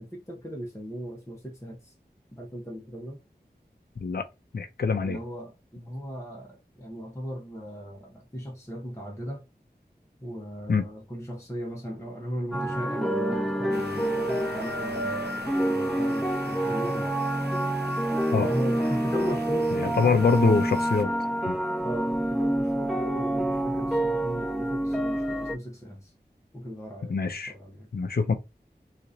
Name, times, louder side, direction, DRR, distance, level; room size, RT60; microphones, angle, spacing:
voice 1, 0.0-1.9 2.3-3.2 5.0-9.4 10.2-17.1 18.3-20.6 21.8-26.1 26.5-27.9, equal, 15° left, 0.9 m, -37 dB
voice 2, 4.5-5.2 10.7-10.9 18.3-18.5 19.8-21.1 21.5-21.6 27.1-27.5 27.9-28.4, left 5 dB, 70° left, 0.5 m, -24 dB
sound 1, 12.5-25.6, right 1 dB, ahead, 1.1 m, -27 dB
sound 2, 13.7-21.0, right 2 dB, 75° right, 0.7 m, -42 dB
2.9 x 2.5 x 3.9 m
wide cardioid pair, 55°, 17 cm